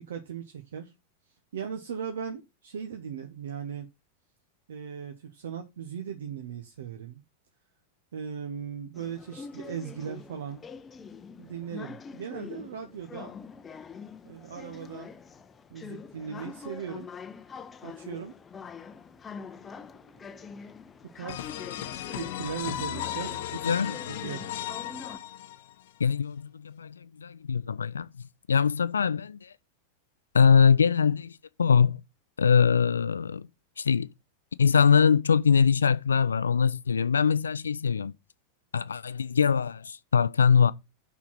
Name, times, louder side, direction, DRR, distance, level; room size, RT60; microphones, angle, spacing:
voice 1, 0.1-0.9 1.5-3.9 4.7-7.2 8.1-10.6 11.4-13.3 14.2-15.2 15.7-17.1 17.8-18.3 19.6-19.7 20.2-20.5 21.1-21.6 22.1-24.5, right 7 dB, 60° right, 0.9 m, -38 dB
sound 1, 8.9-25.2, left 5 dB, 20° left, 0.7 m, -44 dB
sound 2, 21.3-25.9, left 12 dB, 55° left, 0.8 m, -36 dB
voice 2, 23.6-24.0 26.0-28.1 28.5-29.5 30.3-32.0 32.4-33.5 33.8-34.1 34.6-38.1 38.7-40.7, left 6 dB, 70° left, 0.4 m, -23 dB
6.0 x 5.8 x 5.7 m
figure-of-eight pair, 90°, 0 cm